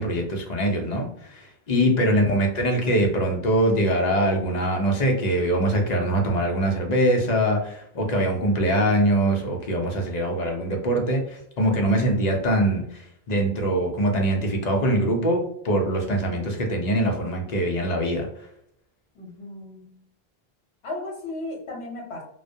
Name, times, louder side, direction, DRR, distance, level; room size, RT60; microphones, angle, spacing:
voice 1, 0.0-18.3, right 1 dB, 50° left, 2 dB, 0.6 m, -23 dB
voice 2, 19.1-20.0 20.8-22.2, left 2 dB, 80° left, 0 dB, 1.0 m, -35 dB
2.2 x 2.1 x 2.6 m, 0.72 s
omnidirectional pair, 1.1 m